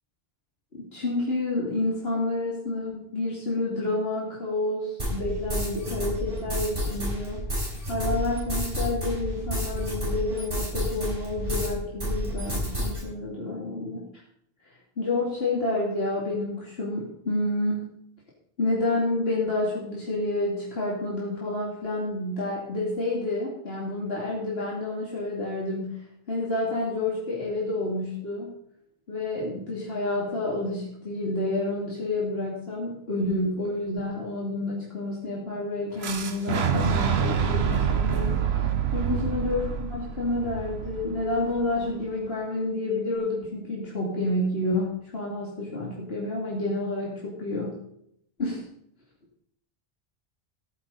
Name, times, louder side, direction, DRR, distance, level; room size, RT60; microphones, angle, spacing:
voice 1, 0.7-7.5 7.9-14.1 15.0-17.9 18.6-28.5 29.1-38.7 38.9-47.8 48.4-48.6, left 2 dB, 75° left, -5 dB, 2.8 m, -29 dB
sound 1, 5.0-11.7 12.0-13.0, equal, 60° right, 6.3 m, -30 dB
Fire / Explosion, 36.0-41.9, right 7 dB, 85° right, 1.2 m, -27 dB
16.5 x 10.0 x 4.0 m, 0.71 s
omnidirectional pair, 1.0 m